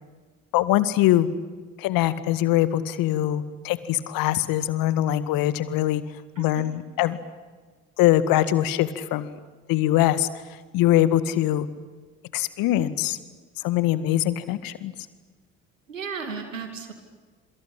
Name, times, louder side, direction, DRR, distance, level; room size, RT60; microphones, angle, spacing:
voice 1, 0.5-1.3 1.8-6.0 6.4-7.2 8.0-9.4 9.7-10.3 10.7-11.7 12.3-13.2 13.6-14.9, left 13 dB, 60° left, 14 dB, 2.0 m, -22 dB
voice 2, 6.4-6.7 15.9-16.9, right 5 dB, 90° right, 6 dB, 2.7 m, -34 dB
27.5 x 24.5 x 8.8 m, 1.4 s
figure-of-eight pair, 55°, 38 cm